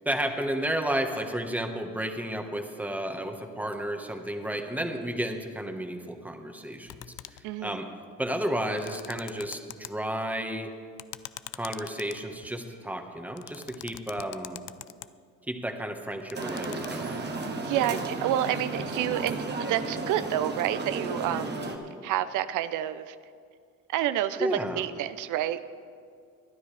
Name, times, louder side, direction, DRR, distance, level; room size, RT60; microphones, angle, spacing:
voice 1, 0.0-7.9 8.2-10.7 11.5-14.6 15.5-17.3 17.7-18.0 24.4-24.9, right 1 dB, 5° right, 5 dB, 1.3 m, -32 dB
sound 1, 6.9-7.5 8.6-9.9 11.0-12.6 13.4-15.1 16.1-16.9, left 16 dB, 85° left, 0.5 m, -43 dB
voice 2, 7.4-7.8 17.7-21.7 22.0-23.2 23.9-25.6, right 12 dB, 90° right, 13 dB, 0.5 m, -29 dB
sound 2, 16.3-21.8, right 3 dB, 35° right, 1.5 m, -34 dB
23.0 x 9.6 x 3.4 m, 2.3 s
cardioid pair, 90°, 30 cm